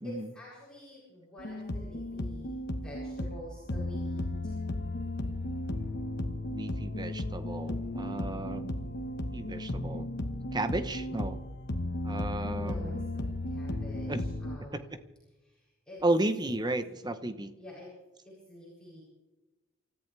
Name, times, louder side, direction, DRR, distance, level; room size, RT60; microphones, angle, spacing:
voice 1, 0.0-4.6 12.5-14.9 15.4-16.0 17.6-17.9 18.2-19.0, left 1 dB, 5° left, -9 dB, 7.4 m, -48 dB
sound 1, 1.4-14.6, left 1 dB, 50° left, 1.3 m, -35 dB
voice 2, 6.5-8.7 9.3-10.1 10.5-11.4 12.0-13.1 14.1-14.2 16.0-17.5, right 2 dB, 20° right, 10 dB, 1.0 m, -33 dB
28.5 x 14.0 x 3.4 m, 1.1 s
head